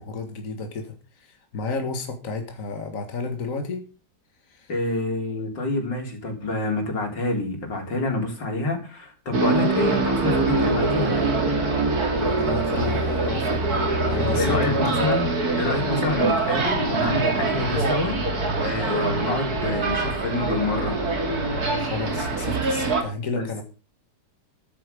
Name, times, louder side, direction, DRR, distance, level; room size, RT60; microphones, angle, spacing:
voice 1, 0.0-3.9 4.5-4.7 12.2-15.0 21.8-23.6, left 4 dB, 50° left, 5 dB, 2.2 m, -32 dB
voice 2, 4.7-11.4 14.2-15.3 15.6-18.2 18.6-21.0 23.4-23.6, left 2 dB, 85° left, 3 dB, 4.4 m, -27 dB
sound 1, 9.3-23.0, right 3 dB, 60° right, 3.2 m, -24 dB
13.5 x 9.8 x 5.3 m, 0.34 s
omnidirectional pair, 1.9 m